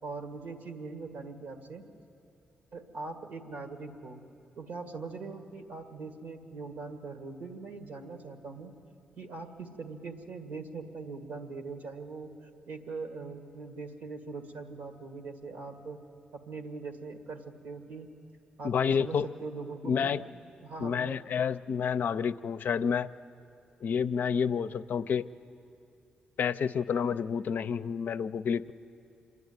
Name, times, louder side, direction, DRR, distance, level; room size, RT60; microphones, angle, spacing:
voice 1, 0.0-1.8 2.7-4.2 4.6-8.7 9.2-12.3 12.7-16.0 16.3-18.1 18.6-20.2 20.6-21.2, right 4 dB, 80° right, 5 dB, 1.9 m, -41 dB
voice 2, 18.6-19.3 19.8-20.2 20.8-23.1 23.8-25.3 26.4-28.7, left 7 dB, 65° left, 12 dB, 0.5 m, -29 dB
26.5 x 11.0 x 9.6 m, 2.6 s
supercardioid pair, 55°, 3 cm